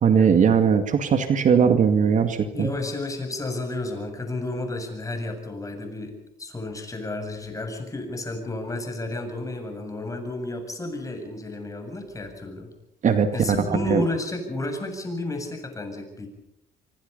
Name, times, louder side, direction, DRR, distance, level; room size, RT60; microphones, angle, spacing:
voice 1, 0.0-2.7 13.0-13.6 13.9-14.0, right 7 dB, 50° right, 8 dB, 2.2 m, -19 dB
voice 2, 2.5-12.7 13.3-16.3, left 2 dB, 20° left, 4 dB, 7.7 m, -32 dB
26.0 x 25.0 x 5.5 m, 0.79 s
cardioid pair, 110°, 17 cm